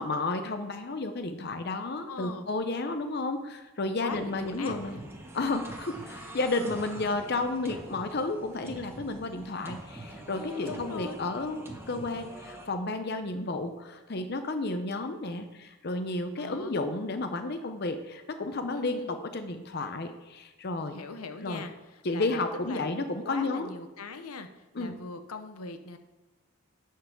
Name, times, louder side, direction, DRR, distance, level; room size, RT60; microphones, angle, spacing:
voice 1, 0.0-5.0 5.3-21.0 21.4-21.7 22.0-23.7 24.7-25.0, left 2 dB, 45° left, 7 dB, 0.6 m, -32 dB
voice 2, 2.1-2.5 4.0-5.0 10.3-11.2 16.4-16.8 18.7-19.1 20.9-21.7 22.1-22.4 22.7-22.9 23.2-26.0, left 4 dB, 85° left, 8 dB, 0.8 m, -41 dB
sound 1, 4.1-12.7, right 1 dB, 10° right, 0.8 m, -44 dB
11.5 x 4.6 x 5.9 m, 1.1 s
head